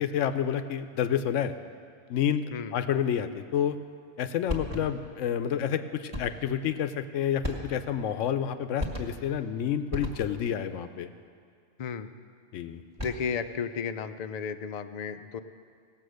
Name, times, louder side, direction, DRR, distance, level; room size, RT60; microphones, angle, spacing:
voice 1, 0.0-1.5 2.1-3.8 4.2-11.1 12.5-12.8, left 9 dB, 80° left, 10 dB, 1.0 m, -29 dB
sound 1, 4.5-5.1 6.1-6.5 7.4-8.0 8.8-9.4 9.9-10.6 12.8-13.4, left 1 dB, 25° right, 1.5 m, -36 dB
voice 2, 11.8-12.1 13.0-15.4, left 6 dB, 60° left, 10 dB, 0.4 m, -33 dB
17.5 x 7.5 x 6.4 m, 2.2 s
omnidirectional pair, 1.3 m